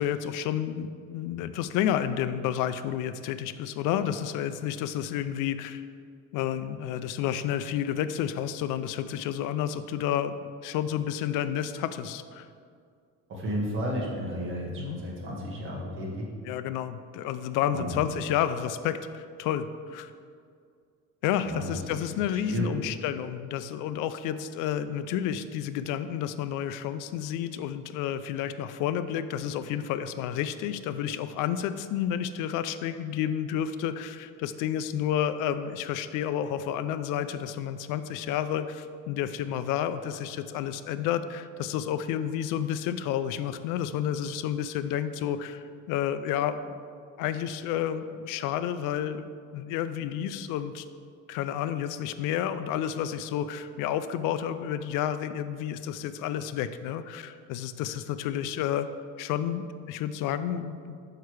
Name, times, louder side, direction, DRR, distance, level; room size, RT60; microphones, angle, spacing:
voice 1, 0.0-5.8 6.3-12.5 14.8-15.0 16.5-20.1 21.2-46.8 47.2-49.3 49.5-50.8 51.3-58.9 59.2-61.0, left 10 dB, 80° left, 12 dB, 0.5 m, -30 dB
voice 2, 13.3-16.3 17.7-18.0 21.4-22.7, equal, 40° right, -3 dB, 1.6 m, -33 dB
6.6 x 5.7 x 4.7 m, 2.2 s
cardioid pair, 175°, 31 cm